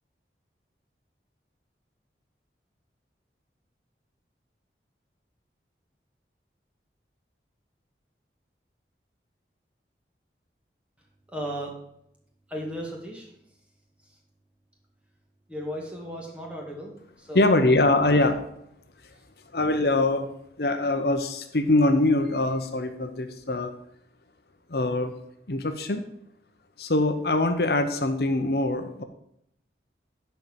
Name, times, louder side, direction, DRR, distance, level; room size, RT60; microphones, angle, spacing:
voice 1, 11.3-11.7 12.5-13.3 14.0-14.2 15.5-17.9 19.1-19.2, equal, 5° right, -1 dB, 2.0 m, -36 dB
voice 2, 17.3-18.4 19.5-20.3 20.6-23.7 24.7-25.1 25.5-26.0 26.8-29.0, left 2 dB, 65° left, 7 dB, 0.9 m, -23 dB
11.0 x 4.6 x 7.2 m, 0.74 s
head